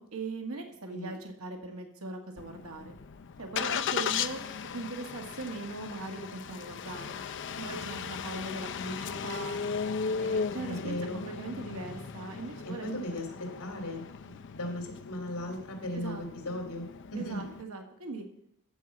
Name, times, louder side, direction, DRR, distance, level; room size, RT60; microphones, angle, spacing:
voice 1, 0.0-2.9 3.4-4.4 4.7-7.2 7.6-9.6 10.2-12.9 15.9-16.6 17.1-18.2, right 3 dB, 65° right, 3 dB, 1.6 m, -40 dB
Engine starting, 2.4-17.6, left 6 dB, 55° left, 0.5 m, -37 dB
voice 2, 10.7-11.2 12.6-17.4, left 1 dB, 85° left, 4 dB, 2.8 m, -37 dB
13.5 x 4.7 x 7.3 m, 0.70 s
head